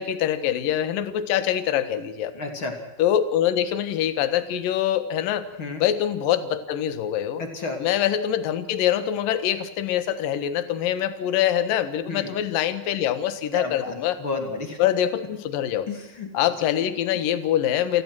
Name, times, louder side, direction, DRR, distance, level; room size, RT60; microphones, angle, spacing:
voice 1, 0.0-2.3 3.0-5.5 5.8-7.4 7.8-14.2 14.8-15.9 16.3-18.0, left 10 dB, 65° left, 11 dB, 2.2 m, -24 dB
voice 2, 2.3-2.7 5.6-5.8 7.4-7.8 12.1-12.3 13.5-14.8 15.9-16.3, left 3 dB, 30° left, 4 dB, 2.7 m, -31 dB
29.0 x 16.5 x 6.2 m, 0.94 s
omnidirectional pair, 6.0 m